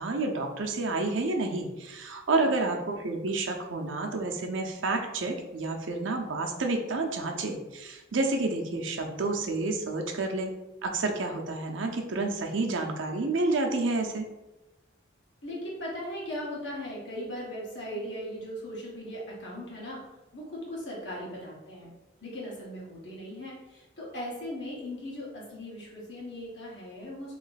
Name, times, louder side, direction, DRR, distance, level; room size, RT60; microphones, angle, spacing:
voice 1, 0.0-10.5 10.8-14.3, right 3 dB, 85° right, 3 dB, 0.6 m, -29 dB
voice 2, 15.4-20.0 20.3-21.9 22.2-27.4, equal, 70° left, -5 dB, 1.5 m, -38 dB
3.1 x 3.0 x 4.0 m, 1.0 s
head